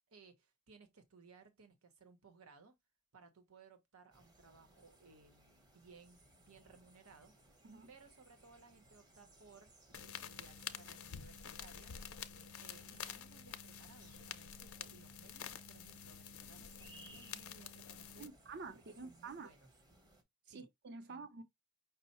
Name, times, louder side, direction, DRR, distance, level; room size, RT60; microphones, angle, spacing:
voice 1, 0.1-2.7 3.1-7.3 7.9-9.7 10.0-11.9 12.6-18.3 18.7-19.7 20.4-20.7 21.1-21.2, right 4 dB, 80° right, 0.9 m, -62 dB
sound 1, 4.1-20.2, right 1 dB, 20° right, 0.9 m, -65 dB
sound 2, 9.9-18.3, left 8 dB, 80° left, 0.6 m, -49 dB
voice 2, 18.2-19.5 20.5-21.4, right 4 dB, 50° right, 0.6 m, -49 dB
5.4 x 2.1 x 4.1 m
head